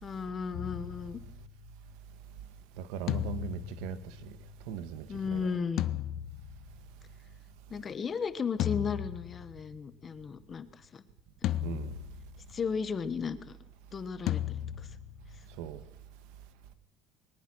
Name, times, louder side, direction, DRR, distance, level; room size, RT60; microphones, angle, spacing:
voice 1, 0.0-1.2 5.1-5.8 7.7-11.0 11.4-11.5 12.5-13.6 13.9-14.4 14.8-14.9, left 6 dB, 25° left, 1.2 m, -35 dB
sound 1, 0.5-1.8 3.1-4.8 5.8-7.1 8.6-10.0 11.4-12.6 14.3-15.7, left 13 dB, 50° left, 0.8 m, -36 dB
voice 2, 2.8-4.3 4.7-5.5 11.6-12.0 15.6-15.8, right 8 dB, 90° right, 1.6 m, -39 dB
22.0 x 19.5 x 6.3 m
cardioid pair, 160°, 0 cm